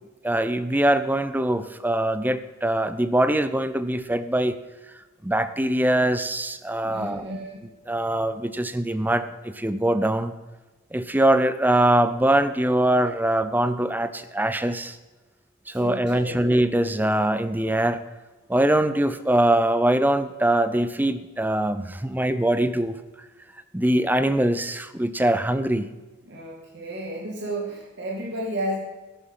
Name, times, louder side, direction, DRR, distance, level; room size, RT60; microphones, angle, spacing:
voice 1, 0.2-4.6 5.2-7.2 7.9-9.2 9.6-10.3 10.9-14.9 15.7-18.0 18.5-23.0 23.7-25.9, right 1 dB, 10° right, 12 dB, 0.7 m, -22 dB
voice 2, 6.8-7.6 15.7-16.4 26.3-28.8, right 1 dB, 55° right, -1 dB, 2.5 m, -32 dB
14.0 x 11.0 x 5.7 m, 1.2 s
head